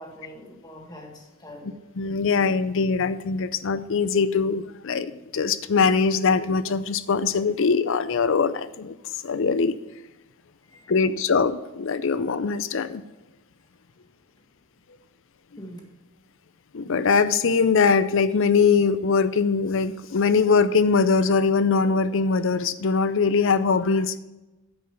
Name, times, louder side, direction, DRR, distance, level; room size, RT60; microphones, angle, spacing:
voice 1, 0.0-1.8 10.6-10.9 15.6-15.8, equal, 20° left, 1 dB, 1.7 m, -43 dB
voice 2, 2.0-8.9 9.2-9.8 10.9-13.0 16.7-24.1, left 5 dB, 60° left, 14 dB, 0.5 m, -22 dB
9.8 x 5.4 x 6.9 m, 1.1 s
head